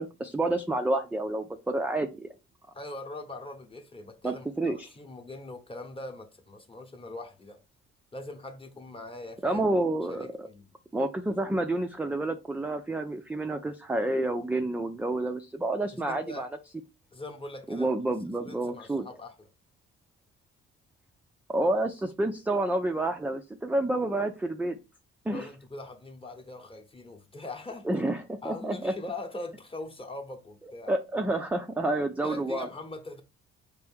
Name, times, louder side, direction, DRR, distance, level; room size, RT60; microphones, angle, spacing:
voice 1, 0.0-2.3 4.2-4.9 9.4-10.5 10.9-16.5 17.7-19.1 21.5-24.8 25.3-25.5 27.8-28.9 30.9-32.7, right 2 dB, 5° right, 0.4 m, -29 dB
voice 2, 2.7-7.6 8.1-9.6 10.1-10.7 15.9-16.5 17.1-17.9 18.5-19.5 25.3-27.9 28.4-31.0 32.2-33.2, left 2 dB, 20° left, 0.9 m, -41 dB
4.5 x 2.6 x 3.4 m
cardioid pair, 90°, 30 cm